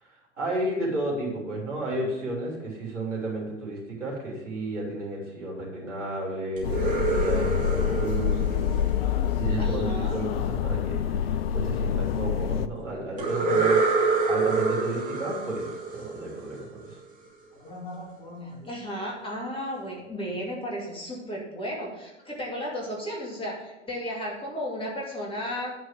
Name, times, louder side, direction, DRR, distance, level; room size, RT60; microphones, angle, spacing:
voice 1, 0.4-8.4 9.4-13.9 14.3-17.0, right 2 dB, 80° right, -3 dB, 3.3 m, -32 dB
sound 1, 6.6-12.7, left 8 dB, 55° left, 0.5 m, -26 dB
sound 2, 6.6-9.5 13.2-16.9, right 4 dB, 20° right, 2.8 m, -27 dB
voice 2, 9.6-10.2 13.4-13.7 17.6-25.7, equal, 15° left, -2 dB, 2.5 m, -34 dB
9.4 x 4.8 x 7.5 m, 0.95 s
figure-of-eight pair, 90°, 36 cm